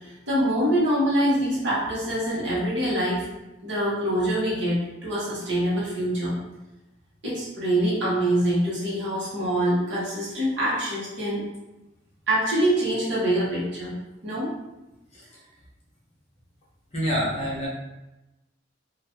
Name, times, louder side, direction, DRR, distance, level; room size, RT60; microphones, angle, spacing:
voice 1, 0.0-3.3 3.6-6.4 7.2-11.4 12.3-13.9 14.2-14.6, right 1 dB, 65° right, -7 dB, 1.0 m, -25 dB
voice 2, 16.9-17.7, equal, 35° left, -5 dB, 0.9 m, -26 dB
2.5 x 2.5 x 3.5 m, 0.98 s
head